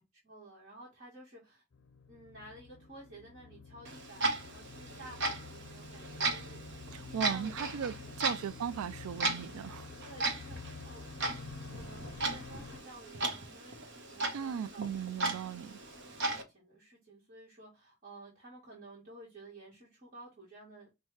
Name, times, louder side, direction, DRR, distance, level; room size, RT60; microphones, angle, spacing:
voice 1, 0.2-1.6 2.1-7.5 7.9-8.1 10.0-11.3 11.7-14.9 15.6-15.7 16.0-20.9, right 1 dB, 40° right, 1.3 m, -53 dB
sound 1, 1.7-12.8, left 4 dB, 55° left, 0.6 m, -49 dB
Clock, 3.8-16.4, right 3 dB, 55° right, 1.0 m, -37 dB
voice 2, 6.9-9.9 14.3-15.8, right 8 dB, 75° right, 0.3 m, -37 dB
5.4 x 2.2 x 3.1 m
head